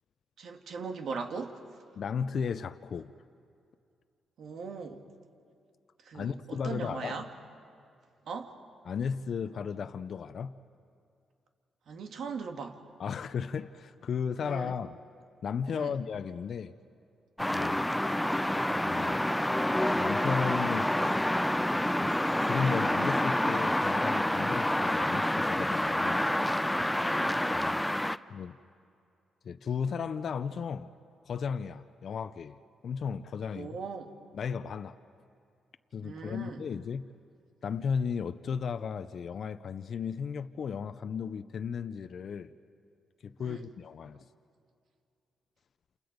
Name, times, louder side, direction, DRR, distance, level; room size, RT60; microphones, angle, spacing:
voice 1, 0.4-1.6 4.4-5.0 6.0-7.3 8.3-8.6 11.9-12.8 14.5-14.7 15.7-16.0 27.0-27.3 33.5-34.1 36.0-36.7 43.4-43.6, right 5 dB, 70° right, 2.0 m, -39 dB
voice 2, 2.0-3.1 6.1-7.3 8.8-10.6 13.0-15.0 15.4-16.7 17.5-17.9 18.8-19.2 19.9-21.2 22.0-26.3 27.5-27.8 28.3-28.6 29.4-30.9 31.3-33.8 34.3-35.0 35.9-37.0 37.6-42.5 43.2-44.3, left 6 dB, 60° left, 0.7 m, -35 dB
sound 1, 17.4-28.2, left 1 dB, 5° left, 0.6 m, -28 dB
29.0 x 28.5 x 5.2 m
supercardioid pair, 60°, 0 cm